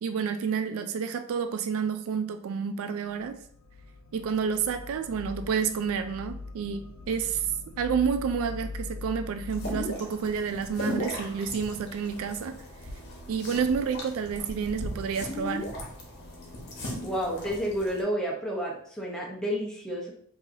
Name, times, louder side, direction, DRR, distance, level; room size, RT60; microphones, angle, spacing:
voice 1, 0.0-3.4 4.1-7.5 7.8-12.6 13.3-15.7, right 6 dB, 65° right, 9 dB, 0.3 m, -29 dB
sound 1, 3.1-9.8, left 3 dB, 75° left, 0.8 m, -41 dB
sound 2, 9.5-18.0, left 1 dB, 50° left, 1.1 m, -38 dB
voice 2, 17.0-20.1, equal, 5° left, -3 dB, 0.9 m, -30 dB
4.6 x 2.9 x 2.7 m, 0.63 s
head